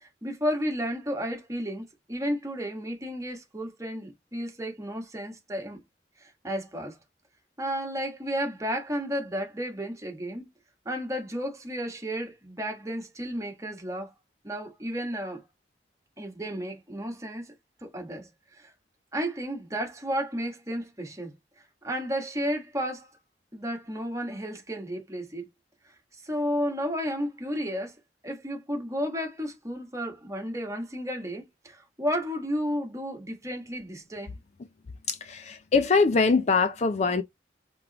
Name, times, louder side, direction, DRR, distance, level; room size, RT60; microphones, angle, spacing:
voice 1, 0.0-5.8 6.2-7.0 7.6-10.4 10.8-14.1 14.4-15.4 16.2-17.5 17.8-18.3 18.6-18.7 19.1-21.3 21.8-23.1 23.5-25.5 26.2-28.0 28.2-34.3, equal, 15° right, 1.3 m, -32 dB
voice 2, 35.1-37.2, left 4 dB, 40° left, 0.4 m, -23 dB
4.6 x 3.8 x 2.9 m
head